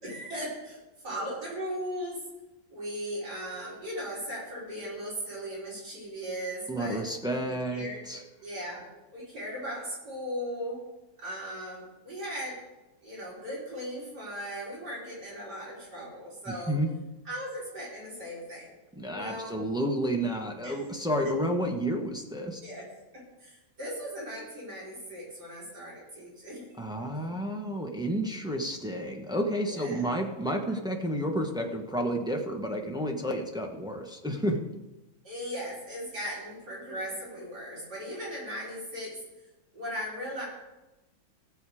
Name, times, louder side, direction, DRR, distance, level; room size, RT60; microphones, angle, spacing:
voice 1, 0.0-0.8 1.0-2.2 2.7-7.0 7.4-8.0 8.4-8.9 9.1-10.8 11.2-12.6 13.0-16.8 17.3-18.7 19.1-19.6 20.6-20.8 22.6-22.9 23.1-26.7 27.1-27.3 29.6-30.1 35.2-39.2 39.7-40.5, equal, 50° right, -6 dB, 5.2 m, -38 dB
voice 2, 6.7-8.2 16.5-16.9 19.0-22.6 26.8-34.6, equal, 5° right, 2 dB, 0.5 m, -31 dB
16.0 x 7.3 x 4.8 m, 1.0 s
omnidirectional pair, 2.2 m